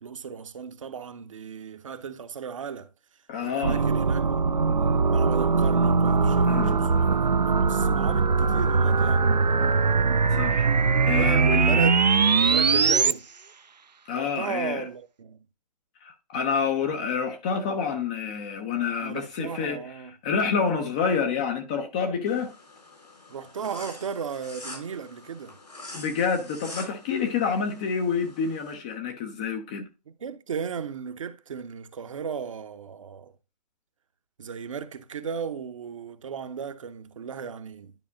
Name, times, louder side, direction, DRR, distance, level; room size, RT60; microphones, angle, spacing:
voice 1, 0.0-2.9 3.4-9.3 11.0-12.1 12.4-13.3 14.2-15.4 19.0-20.2 23.3-25.6 30.1-33.3 34.4-37.9, right 6 dB, 50° right, 0.7 m, -36 dB
voice 2, 3.3-3.8 6.5-6.8 10.3-10.7 11.1-11.9 14.1-14.9 16.0-22.5 25.9-29.8, left 6 dB, 10° left, 0.3 m, -28 dB
sound 1, 3.6-13.1, right 4 dB, 90° right, 0.5 m, -21 dB
sound 2, 22.3-28.7, left 2 dB, 80° left, 4.1 m, -45 dB
11.0 x 4.9 x 2.5 m
figure-of-eight pair, 140°, 21 cm